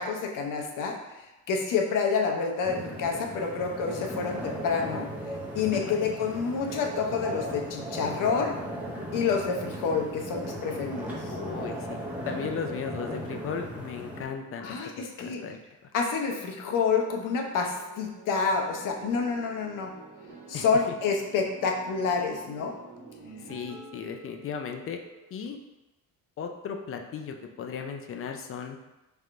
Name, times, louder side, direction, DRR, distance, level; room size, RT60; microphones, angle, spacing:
voice 1, 0.0-5.1 5.5-8.5 9.1-11.4 14.6-15.4 15.9-19.9 20.5-22.7, left 5 dB, 65° left, 2 dB, 0.7 m, -28 dB
sound 1, 2.6-14.2, right 1 dB, 5° right, 0.6 m, -37 dB
voice 2, 11.3-12.0 12.3-14.8 15.2-15.6 20.5-20.7 23.4-25.0 25.3-25.6 26.4-28.8, left 6 dB, 40° left, 4 dB, 0.4 m, -36 dB
sound 2, 17.1-25.5, right 4 dB, 85° right, 1.2 m, -49 dB
3.4 x 2.5 x 4.3 m, 1.0 s
cardioid pair, 140°, 34 cm